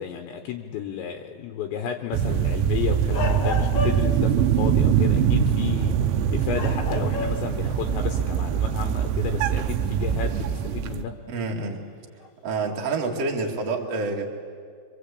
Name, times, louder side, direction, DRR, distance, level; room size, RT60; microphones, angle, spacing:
voice 1, 0.0-11.1, left 8 dB, 75° left, 6 dB, 3.1 m, -32 dB
sound 1, 2.1-11.0, right 8 dB, 75° right, 2.9 m, -23 dB
sound 2, 3.1-4.3 5.8-6.0 6.5-7.6 8.0-8.1 10.6-10.7 12.2-12.5, left 4 dB, 55° left, 2.0 m, -31 dB
voice 2, 11.3-11.8 12.4-14.2, right 3 dB, 45° right, 0 dB, 2.4 m, -27 dB
26.0 x 23.5 x 8.5 m, 2.2 s
omnidirectional pair, 5.8 m